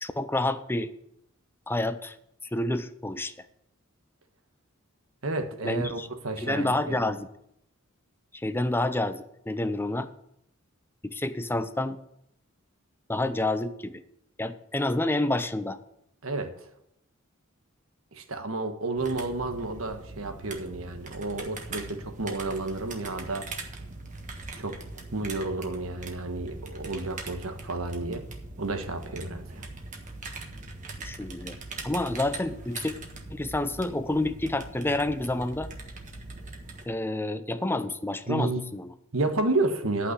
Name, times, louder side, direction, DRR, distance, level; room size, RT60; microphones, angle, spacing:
voice 1, 0.0-0.9 1.7-2.2 2.5-3.3 5.6-6.1 6.4-7.3 8.3-10.1 11.0-12.0 13.1-14.0 14.4-15.8 31.0-31.6 31.8-32.9 33.3-35.7 36.9-38.9, left 2 dB, 10° left, 11 dB, 0.6 m, -29 dB
voice 2, 5.2-7.1 16.2-16.5 18.1-23.5 24.6-24.8 25.1-28.2 28.6-29.7 38.3-38.6 39.1-40.1, right 2 dB, 80° right, 6 dB, 1.4 m, -31 dB
sound 1, 19.0-36.9, right 3 dB, 35° right, 1.4 m, -41 dB
11.0 x 5.9 x 8.0 m, 0.77 s
head